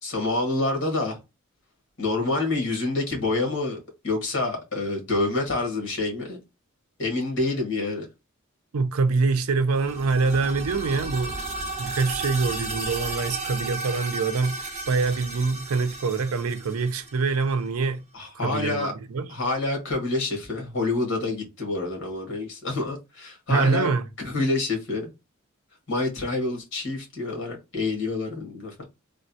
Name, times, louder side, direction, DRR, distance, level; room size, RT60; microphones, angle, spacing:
voice 1, 0.0-1.2 2.0-3.8 4.0-6.4 7.0-8.0 18.1-18.9 19.3-23.9 24.2-25.1 25.9-28.8, left 2 dB, 60° left, 1.5 m, -27 dB
voice 2, 8.7-11.4 11.8-18.0 18.4-19.3 23.5-24.1, right 4 dB, 85° right, 0.5 m, -25 dB
sound 1, 9.7-17.5, right 2 dB, 30° right, 0.9 m, -34 dB
3.4 x 2.2 x 2.6 m
head